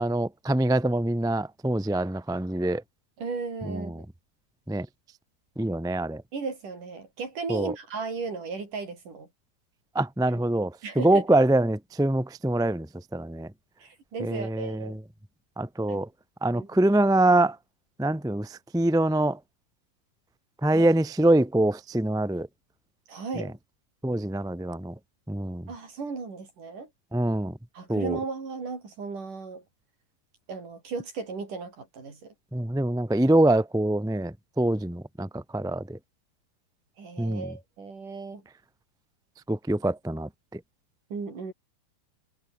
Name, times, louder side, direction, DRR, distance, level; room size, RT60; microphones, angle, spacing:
voice 1, 0.0-2.8 3.7-3.9 4.7-4.8 5.6-6.2 7.5-7.7 9.9-10.7 10.9-12.9 13.1-13.5 14.2-15.0 15.6-16.1 16.4-17.5 18.0-19.4 20.6-22.5 23.4-23.5 24.0-24.9 25.3-25.7 27.1-27.5 27.9-28.2 32.5-36.0 37.2-37.5 39.5-40.6, right 1 dB, ahead, 0.8 m, -24 dB
voice 2, 3.2-4.0 6.3-9.3 10.8-11.3 13.8-15.0 15.9-16.0 16.5-16.8 20.7-20.9 23.1-23.6 25.7-26.9 27.7-29.6 30.5-32.3 37.0-38.4 41.1-41.5, right 4 dB, 60° right, 7.3 m, -36 dB
omnidirectional pair, 4.2 m